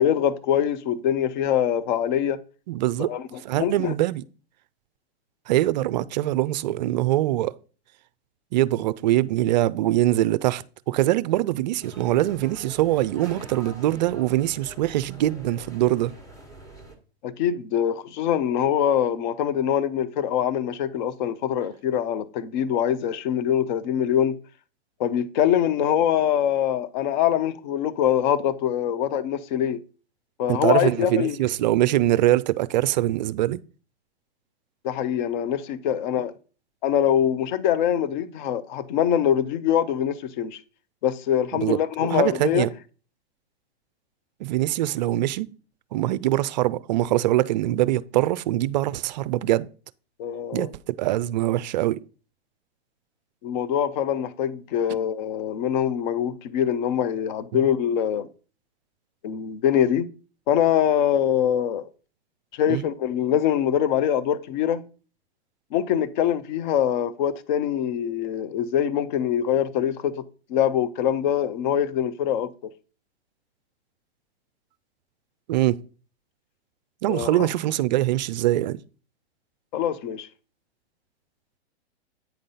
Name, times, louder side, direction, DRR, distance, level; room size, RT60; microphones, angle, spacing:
voice 1, 0.0-2.4 3.1-3.9 17.2-24.4 25.0-29.8 30.4-31.4 34.8-36.3 36.8-40.6 41.0-42.7 50.2-50.7 53.4-58.3 59.2-60.1 60.5-61.8 62.5-64.8 65.7-70.1 70.5-72.7 77.1-77.5 79.7-80.3, left 9 dB, 45° left, 0.7 m, -24 dB
voice 2, 2.7-3.1 3.4-4.2 5.5-7.5 8.5-16.1 30.5-33.6 41.6-41.8 42.1-42.7 44.4-45.5 45.9-49.7 50.5-52.0 62.7-62.9 75.5-75.8 77.0-78.8, right 15 dB, 45° right, 0.4 m, -23 dB
sound 1, 11.8-17.0, right 1 dB, 10° left, 1.3 m, -45 dB
9.0 x 3.8 x 5.5 m
hypercardioid pair, 130°, 32 cm